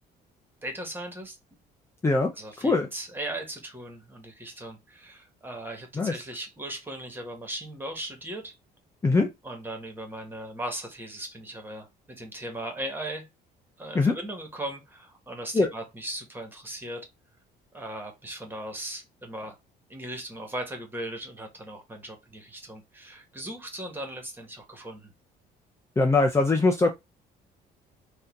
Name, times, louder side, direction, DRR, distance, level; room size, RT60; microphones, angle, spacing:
voice 1, 0.6-1.4 2.4-8.6 9.4-13.3 13.8-17.1 17.7-19.6 19.9-25.1, right 1 dB, 10° right, 1.7 m, -38 dB
voice 2, 2.6-2.9 6.0-6.2 9.0-9.3 13.9-14.1 15.5-15.7 26.0-26.9, left 3 dB, 15° left, 0.6 m, -22 dB
4.1 x 2.9 x 3.9 m
cardioid pair, 110°, 17 cm